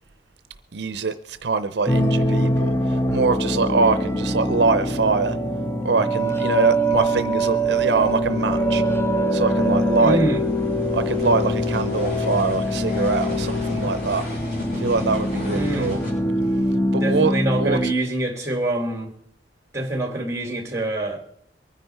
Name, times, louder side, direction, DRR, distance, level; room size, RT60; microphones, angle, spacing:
voice 1, 0.7-5.4 5.8-8.8 9.3-10.2 10.9-14.2 14.8-16.0 16.9-17.8, right 4 dB, 65° right, 0.6 m, -23 dB
sound 1, 1.9-17.9, equal, 15° left, 0.8 m, -23 dB
sound 2, 7.7-16.1, equal, 65° left, 7.1 m, -37 dB
voice 2, 10.0-10.4 15.5-16.0 17.0-19.1 19.7-21.2, right 1 dB, 15° right, 2.5 m, -25 dB
23.0 x 10.0 x 4.5 m
head